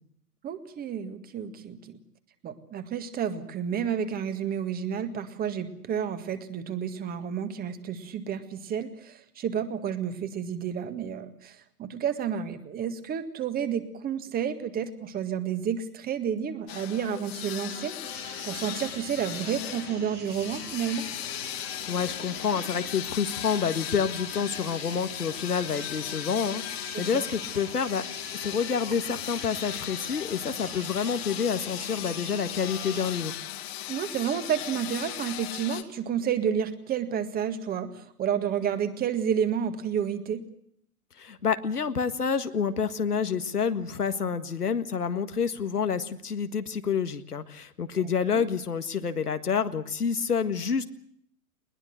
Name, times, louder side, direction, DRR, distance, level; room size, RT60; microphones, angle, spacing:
voice 1, 0.4-2.0 2.4-17.9 18.4-21.1 26.9-27.2 33.9-40.4 48.0-48.5, right 8 dB, 20° right, 10 dB, 1.9 m, -30 dB
sound 1, 16.7-35.8, left 14 dB, 40° left, 2.3 m, -37 dB
sound 2, 18.0-33.2, right 6 dB, 75° right, 2.7 m, -46 dB
voice 2, 21.9-28.0 28.4-33.3 41.2-50.8, left 6 dB, 80° left, 10 dB, 1.8 m, -28 dB
21.0 x 20.5 x 8.0 m, 0.68 s
figure-of-eight pair, 110°, 45 cm